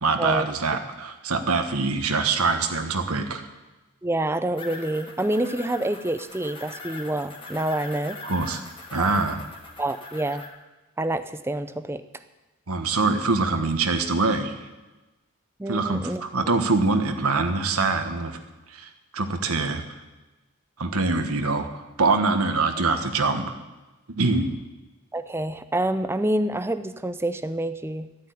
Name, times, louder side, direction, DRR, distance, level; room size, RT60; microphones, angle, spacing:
voice 1, 0.0-3.4 8.2-8.6 8.9-9.4 12.7-14.5 15.7-18.4 18.7-19.8 20.8-21.7 22.0-23.6 24.1-24.6, right 3 dB, 90° right, 6 dB, 1.4 m, -24 dB
voice 2, 4.0-8.2 8.9-9.2 9.8-10.4 11.0-12.0 15.6-16.2 25.1-28.1, right 1 dB, 10° right, 12 dB, 0.5 m, -27 dB
sound 1, 4.5-10.5, left 3 dB, 25° left, 2.0 m, -41 dB
13.0 x 9.1 x 9.3 m, 1.1 s
head